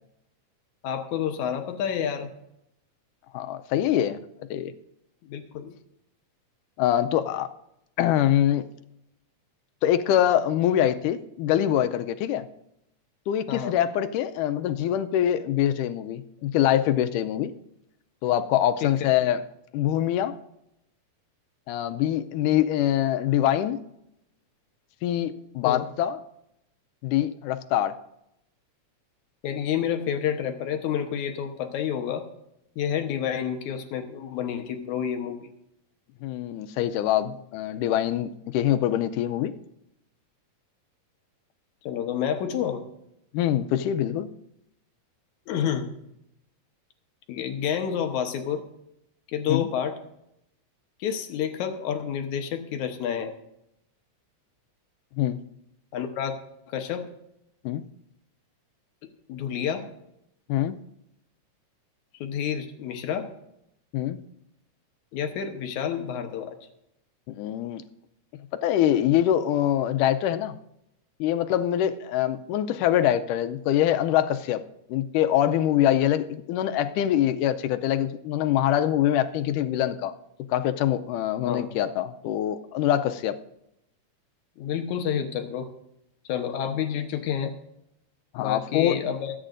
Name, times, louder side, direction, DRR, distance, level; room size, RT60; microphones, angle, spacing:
voice 1, 0.8-2.3 5.2-5.7 13.5-13.8 18.8-19.1 25.6-25.9 29.4-32.2 32.8-35.5 41.8-42.8 45.5-45.9 47.3-48.6 49.3-50.0 51.0-53.3 55.9-56.4 56.7-57.1 59.3-59.9 62.2-63.3 65.1-66.6 81.5-81.7 84.6-85.7 86.3-87.5 88.4-89.3, left 8 dB, 75° left, 6 dB, 2.3 m, -29 dB
voice 2, 3.3-4.2 4.5-4.7 6.8-7.5 8.0-8.6 9.8-12.5 13.3-17.5 18.2-19.4 19.7-20.4 21.7-23.8 25.0-26.2 27.0-27.9 36.2-39.5 43.3-44.3 49.5-49.7 55.2-55.4 57.6-57.8 60.5-60.8 63.9-64.2 67.3-67.8 68.6-70.6 71.2-74.6 74.9-80.1 80.5-83.4 88.3-89.0, left 11 dB, 90° left, 10 dB, 2.2 m, -24 dB
24.0 x 9.1 x 2.6 m, 0.81 s
omnidirectional pair, 3.6 m